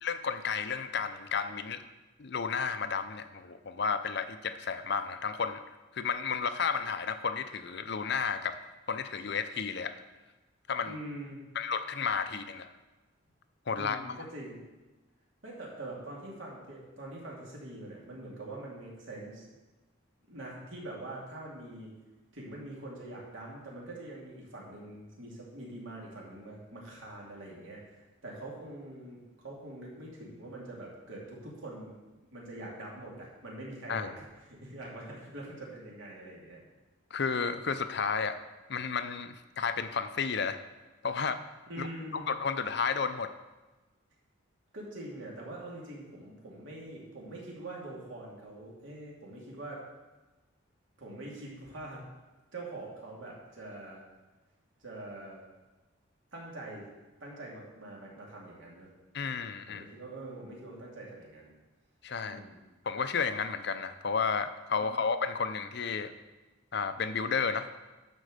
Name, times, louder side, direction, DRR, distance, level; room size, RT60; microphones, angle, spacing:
voice 1, 0.0-1.8 2.2-5.6 5.9-8.6 8.9-9.9 10.7-11.0 11.5-12.7 13.7-14.0 33.9-34.1 37.1-38.4 38.7-40.6 41.0-41.4 41.8-41.9 42.3-43.3 59.1-59.8 62.0-62.4 62.9-66.1 66.7-67.7, left 5 dB, 55° left, 10 dB, 0.6 m, -32 dB
voice 2, 10.8-11.4 13.7-14.6 15.4-19.4 20.3-21.9 22.3-27.8 28.2-32.0 32.3-34.2 34.5-36.6 41.7-42.3 44.7-49.8 51.0-52.0 52.5-54.0 54.8-55.4 56.3-56.9 57.2-58.9 59.7-61.5 62.2-62.6 64.8-65.0, right 1 dB, 70° right, -3 dB, 2.6 m, -44 dB
11.5 x 4.5 x 6.6 m, 1.2 s
head